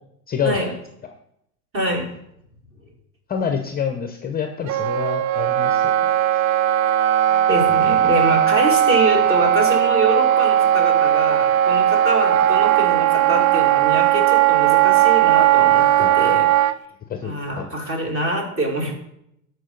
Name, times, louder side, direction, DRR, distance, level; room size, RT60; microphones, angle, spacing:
voice 1, 0.3-0.7 3.3-6.2 7.8-8.0 16.0-16.2 17.1-17.7, left 7 dB, 20° left, 6 dB, 0.6 m, -27 dB
voice 2, 1.7-2.1 7.3-16.7 17.2-18.9, right 1 dB, 30° right, 2 dB, 2.3 m, -25 dB
Wind instrument woodwind instrument, 4.7-16.7, right 11 dB, 60° right, 0.5 m, -17 dB
12.5 x 4.6 x 3.9 m, 0.75 s
hypercardioid pair, 95°, 46 cm